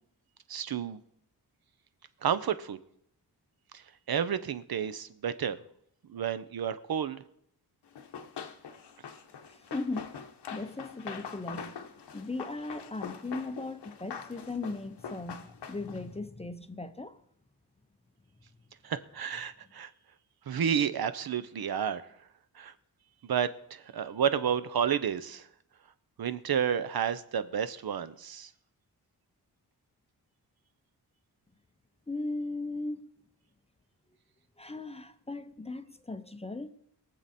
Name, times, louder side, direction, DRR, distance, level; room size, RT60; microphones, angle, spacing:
voice 1, 0.5-1.0 2.2-2.8 3.7-3.8 4.1-5.6 6.1-7.2 18.8-19.9 20.5-22.0 22.6-22.7 23.2-25.5 26.2-28.5, right 8 dB, 65° right, 0.8 m, -31 dB
Run, 8.0-16.1, left 6 dB, 85° left, 1.1 m, -43 dB
voice 2, 9.5-10.1 10.5-17.2 32.1-33.1 34.6-36.7, left 2 dB, 15° left, 0.6 m, -38 dB
22.5 x 7.5 x 4.2 m
wide cardioid pair, 160°, 40 cm